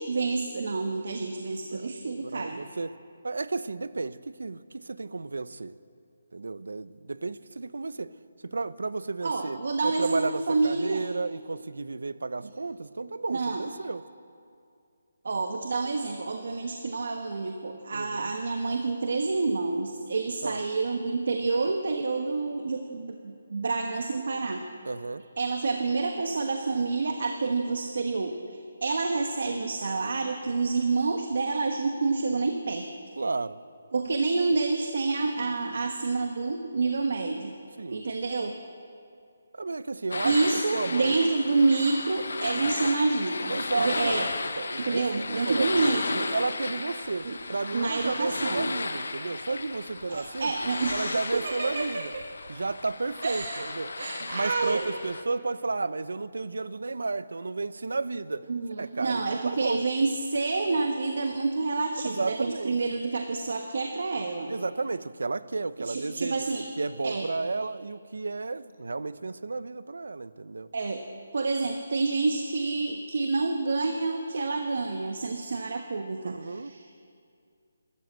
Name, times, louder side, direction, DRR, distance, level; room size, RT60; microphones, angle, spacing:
voice 1, 0.0-2.6 9.2-11.1 13.3-13.7 15.2-24.6 25.4-32.9 33.9-37.5 37.9-38.6 40.2-44.3 44.8-46.3 47.2-47.4 47.7-48.7 50.1-52.2 53.2-53.7 54.0-55.0 58.5-64.5 65.8-66.7 67.0-67.3 70.7-71.0 71.3-76.8, right 3 dB, 55° right, 4 dB, 1.4 m, -28 dB
voice 2, 2.2-3.0 3.2-5.7 6.3-8.1 8.4-14.0 17.9-18.3 20.4-20.6 24.8-25.2 33.2-33.6 37.8-38.0 39.5-41.2 43.5-44.3 44.6-45.7 46.3-50.5 50.9-52.1 52.5-53.9 54.2-58.5 58.8-59.8 62.0-62.8 64.5-66.5 66.8-70.7 76.2-76.7, right 3 dB, 90° right, 15 dB, 0.8 m, -32 dB
sound 1, 40.1-55.2, left 3 dB, 70° left, 1.5 m, -34 dB
26.5 x 13.5 x 7.7 m, 2.4 s
hypercardioid pair, 180°, 0 cm